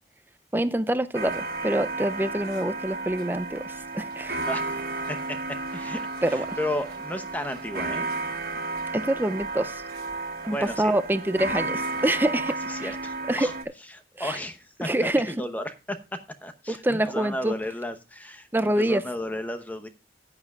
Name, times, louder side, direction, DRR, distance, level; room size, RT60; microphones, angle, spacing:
voice 1, 0.5-4.4 6.2-6.6 8.9-9.8 10.4-12.5 12.8-12.9 13.3-13.5 14.2-14.4 14.8-15.3 16.7-17.5 18.5-19.0, right 1 dB, 10° right, 0.5 m, -26 dB
sound 1, 1.1-13.6, right 3 dB, 55° right, 1.5 m, -33 dB
voice 2, 5.1-8.1 10.5-10.9 12.5-13.5 13.9-14.9 15.3-19.9, left 1 dB, 10° left, 0.8 m, -34 dB
15.0 x 9.6 x 2.4 m
head